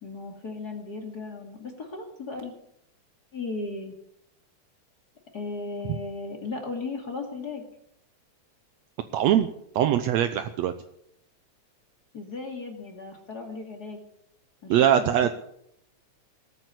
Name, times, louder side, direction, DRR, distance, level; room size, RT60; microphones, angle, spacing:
voice 1, 0.0-2.5 3.3-3.9 5.3-7.7 12.1-14.0 14.6-15.3, left 3 dB, 35° left, 3 dB, 2.5 m, -36 dB
voice 2, 9.1-9.5 9.8-10.7 14.7-15.3, right 10 dB, 75° right, 10 dB, 1.9 m, -22 dB
19.0 x 9.0 x 8.2 m, 0.73 s
omnidirectional pair, 3.4 m